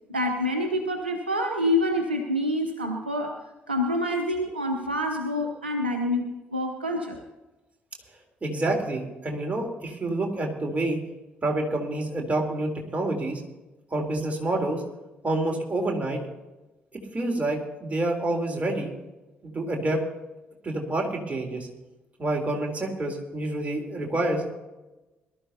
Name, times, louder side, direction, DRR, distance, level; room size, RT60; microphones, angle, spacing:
voice 1, 0.1-7.2, left 1 dB, 85° right, 4 dB, 0.8 m, -27 dB
voice 2, 8.4-11.0 11.4-13.4 13.9-14.8 15.2-16.2 17.1-18.9 19.4-20.0 20.6-21.7 22.2-24.5, right 2 dB, 25° right, 0 dB, 3.6 m, -28 dB
22.0 x 12.5 x 2.9 m, 1.1 s
figure-of-eight pair, 40°, 5 cm